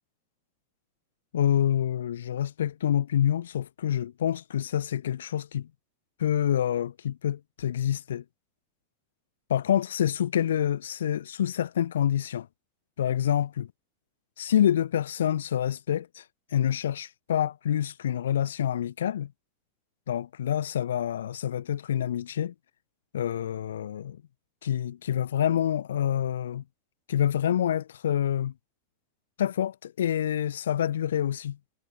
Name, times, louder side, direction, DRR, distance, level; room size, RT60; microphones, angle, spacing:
voice 1, 1.3-5.7 6.2-8.2 9.5-12.5 13.0-13.7 14.4-16.2 16.5-19.3 20.1-22.5 23.1-24.2 24.6-26.6 27.1-28.5 29.4-31.6, left 10 dB, 65° left, 1.0 m, -27 dB
figure-of-eight pair, 90°, 0 cm